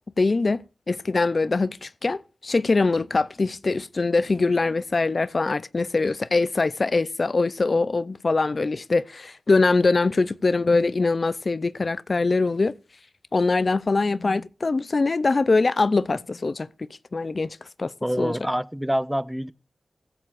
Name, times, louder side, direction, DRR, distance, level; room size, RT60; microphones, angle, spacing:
voice 1, 0.2-0.6 0.9-12.7 13.3-16.7 17.1-17.5 17.8-17.9 18.2-18.4, left 3 dB, 50° left, 0.5 m, -23 dB
voice 2, 18.0-19.5, equal, 5° right, 0.5 m, -26 dB
16.0 x 14.5 x 2.5 m
cardioid pair, 55°, 0 cm